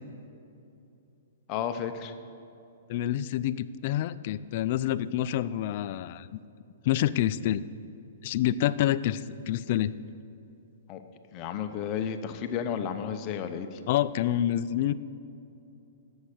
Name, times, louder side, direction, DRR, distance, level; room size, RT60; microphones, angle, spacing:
voice 1, 1.5-2.1 10.9-11.0 11.3-13.8, left 8 dB, 30° left, 7 dB, 0.7 m, -32 dB
voice 2, 2.9-6.4 6.8-7.6 8.2-9.9 13.9-14.9, left 12 dB, 45° left, 16 dB, 0.3 m, -27 dB
11.5 x 7.3 x 6.5 m, 2.7 s
hypercardioid pair, 155°, 0 cm